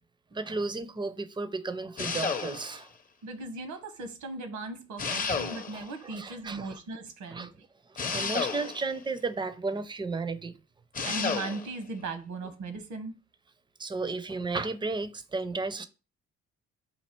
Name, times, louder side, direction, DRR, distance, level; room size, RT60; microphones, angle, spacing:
voice 1, 0.3-2.9 5.3-5.4 5.7-6.8 7.3-7.5 8.0-10.5 13.8-15.9, right 3 dB, 15° right, 0.5 m, -34 dB
sound 1, 2.0-2.9 5.0-5.9 8.0-9.0 10.9-11.7, left 5 dB, 30° left, 0.6 m, -32 dB
voice 2, 3.2-7.5 11.0-13.1, right 3 dB, 75° right, 1.0 m, -38 dB
4.3 x 2.8 x 4.4 m
cardioid pair, 90°, 30 cm